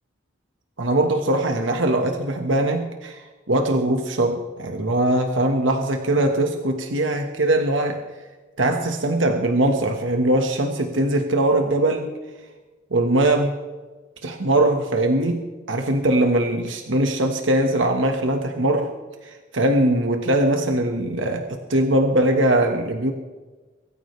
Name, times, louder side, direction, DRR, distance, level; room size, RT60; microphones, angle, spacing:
voice 1, 0.8-8.0 8.6-12.1 12.9-13.6 14.2-18.9 19.2-23.1, right 1 dB, 75° right, 4 dB, 1.5 m, -21 dB
23.5 x 14.0 x 3.3 m, 1.2 s
head